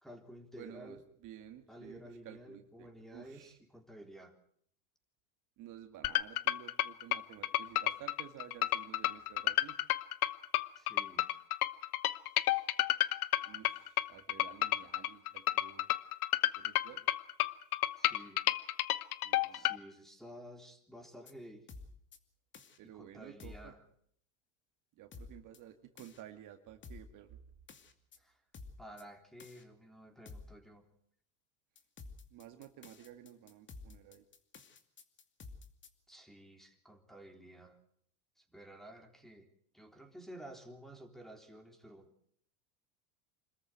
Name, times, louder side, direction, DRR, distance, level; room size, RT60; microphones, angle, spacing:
voice 1, 0.0-1.0 1.7-4.4 10.8-11.3 18.0-18.4 19.5-21.7 22.9-23.8 28.2-28.4 28.8-30.8 36.1-37.8 38.4-39.5 39.7-42.1, equal, ahead, 5 dB, 3.7 m, -52 dB
voice 2, 0.6-3.6 5.6-9.8 13.5-15.9 16.6-17.1 19.2-19.7 22.8-23.7 25.0-27.4 32.3-34.2, right 11 dB, 45° right, 7 dB, 2.1 m, -53 dB
sound 1, 6.0-19.8, left 15 dB, 85° left, 1.2 m, -31 dB
sound 2, 21.0-21.3 21.7-22.2 22.5-22.8 23.4-23.7 25.1-25.6 26.0-26.2 26.8-27.1 27.7-28.2 28.5-29.0 29.4-29.6 30.3-30.6 31.8-35.9, left 3 dB, 25° left, 2.5 m, -51 dB
26.5 x 14.0 x 9.4 m, 0.66 s
supercardioid pair, 115°, 43 cm